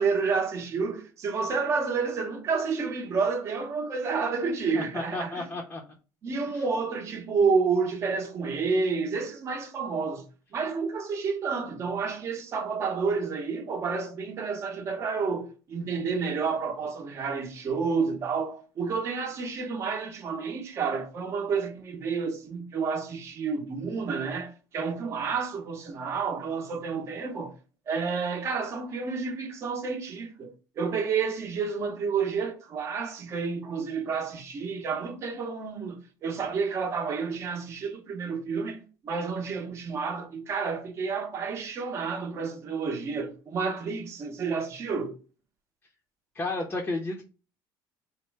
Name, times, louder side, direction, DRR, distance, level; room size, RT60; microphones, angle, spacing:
voice 1, 0.0-5.5 6.2-10.2 10.5-27.5 27.9-45.2, right 5 dB, 35° right, 0.7 m, -30 dB
voice 2, 4.7-5.8 6.5-6.6 46.3-47.2, left 2 dB, 20° left, 0.6 m, -32 dB
4.2 x 2.1 x 4.4 m
cardioid pair, 165°, 9 cm